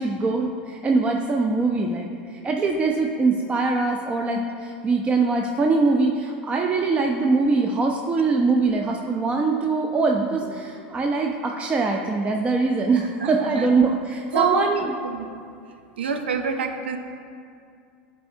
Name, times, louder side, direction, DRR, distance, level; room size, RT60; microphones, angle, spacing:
voice 1, 0.0-2.1 2.4-14.8, right 3 dB, 20° right, 2 dB, 0.4 m, -22 dB
voice 2, 12.9-13.7 14.3-15.3 16.0-17.0, right 5 dB, 85° right, 5 dB, 0.6 m, -26 dB
11.0 x 4.3 x 2.6 m, 2.4 s
hypercardioid pair, 100°, 6 cm